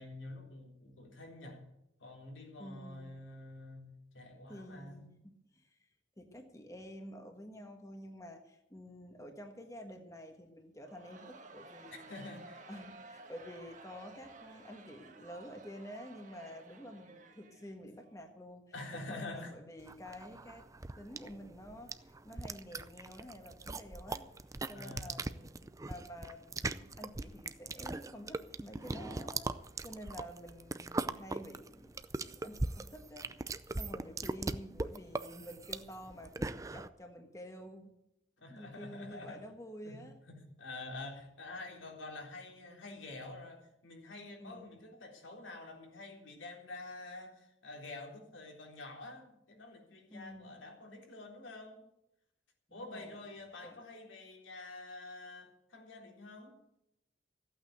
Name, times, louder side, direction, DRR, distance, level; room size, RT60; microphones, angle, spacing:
voice 1, 0.0-1.6 2.0-3.9 4.1-5.2 12.1-12.6 18.7-19.5 24.7-25.2 38.4-39.4 39.8-40.0 40.3-51.8 52.7-56.6, left 2 dB, 85° left, 1 dB, 3.7 m, -47 dB
voice 2, 2.6-3.1 4.5-5.9 6.2-12.3 12.7-18.6 18.9-20.7 21.0-24.3 24.7-29.5 29.8-31.9 32.2-37.9 38.5-40.2 44.4-44.8 50.1-50.7 52.7-53.2 53.6-53.8, equal, 15° left, 4 dB, 1.4 m, -50 dB
Crowd, 10.8-18.1, right 3 dB, 40° right, 1.7 m, -54 dB
sound 1, 19.9-36.9, right 2 dB, 15° right, 0.5 m, -40 dB
15.5 x 8.8 x 8.0 m, 0.84 s
head